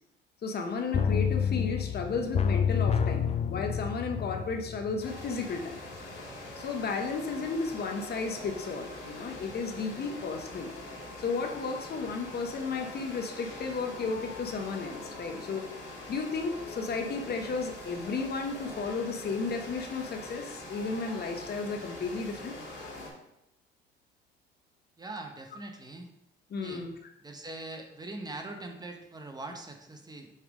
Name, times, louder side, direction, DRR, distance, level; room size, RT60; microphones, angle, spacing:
voice 1, 0.4-5.8 6.6-10.7 11.2-15.7 16.1-22.5 26.5-26.9, left 4 dB, 55° left, 4 dB, 0.9 m, -33 dB
sound 1, 0.9-5.6 5.9-6.0, left 7 dB, 35° left, 0.4 m, -29 dB
sound 2, 5.0-23.1, left 1 dB, 70° left, 2.5 m, -43 dB
voice 2, 25.0-26.1 26.6-26.9 27.2-30.3, right 2 dB, 20° right, 4 dB, 0.9 m, -42 dB
6.5 x 3.3 x 5.0 m, 0.83 s
cardioid pair, 90°, 20 cm